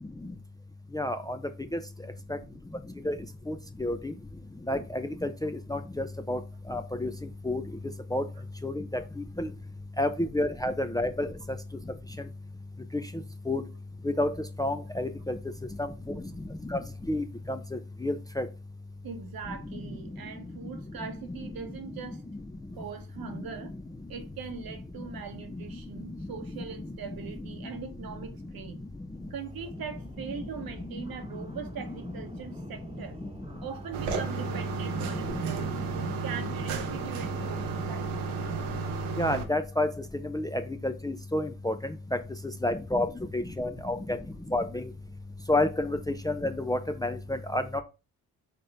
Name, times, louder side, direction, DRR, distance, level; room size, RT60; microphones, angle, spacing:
voice 1, 0.9-1.4 1.7-1.8 3.0-3.2 3.5-3.6 3.8-4.1 4.7-6.4 6.7-7.1 7.4-7.6 8.1-8.2 8.6-8.8 9.4-9.5 10.0-11.3 13.5-13.6 14.0-14.3 14.6-15.4 16.1-16.2 16.7-16.8 17.1-17.6 18.0-18.5 39.2-39.9 40.3-41.7 42.6-43.1 43.3-44.2 44.5-44.8 45.5-47.8, left 1 dB, 10° left, 0.5 m, -29 dB
voice 2, 19.0-22.2 22.8-23.7 24.1-28.8 29.3-33.2 33.6-38.3, right 6 dB, 60° right, 1.1 m, -41 dB
sound 1, 29.0-43.9, right 1 dB, 15° right, 1.2 m, -52 dB
sound 2, 33.9-39.4, right 5 dB, 85° right, 0.9 m, -33 dB
4.2 x 3.7 x 3.4 m
hypercardioid pair, 50°, 40 cm